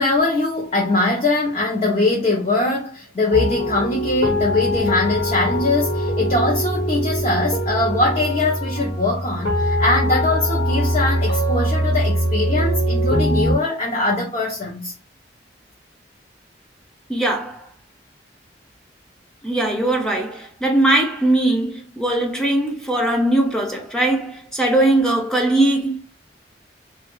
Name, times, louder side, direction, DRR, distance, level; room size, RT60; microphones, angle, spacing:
voice 1, 0.0-14.9, left 2 dB, 35° left, 0.7 m, -21 dB
sound 1, 3.3-13.6, equal, 85° left, 1.4 m, -22 dB
voice 2, 17.1-17.7 19.4-26.0, right 1 dB, 5° left, 0.5 m, -20 dB
3.1 x 2.4 x 2.9 m
head